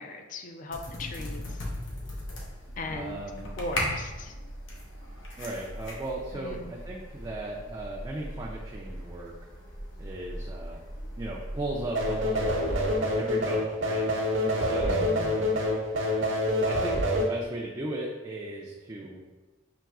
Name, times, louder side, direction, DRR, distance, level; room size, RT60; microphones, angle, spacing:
voice 1, 0.0-1.6 2.8-3.2 3.6-4.3 6.3-6.7 14.9-15.5, left 2 dB, 40° left, 5 dB, 0.4 m, -38 dB
sound 1, 0.7-13.0, equal, 85° left, 0.9 m, -38 dB
voice 2, 2.9-3.5 5.4-9.3 10.0-10.8 11.2-12.5 13.1-14.1 14.4-15.0 16.6-19.2, right 1 dB, 20° right, -3 dB, 0.4 m, -36 dB
sound 2, 11.9-17.3, left 1 dB, 75° right, 0.7 m, -26 dB
5.8 x 3.0 x 2.4 m, 1.2 s
head